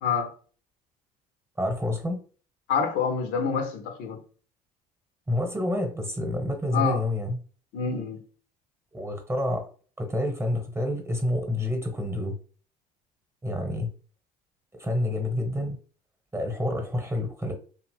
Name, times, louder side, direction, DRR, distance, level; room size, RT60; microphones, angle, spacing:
voice 1, 0.0-0.3 2.7-4.2 6.7-7.0 7.7-8.2, left 6 dB, 65° left, 0.8 m, -27 dB
voice 2, 1.6-2.2 5.3-7.4 8.9-9.6 10.0-12.3 13.4-13.9 14.8-15.8 16.3-17.5, left 1 dB, 15° right, 1.0 m, -28 dB
2.8 x 2.4 x 3.0 m
hypercardioid pair, 65°, 20 cm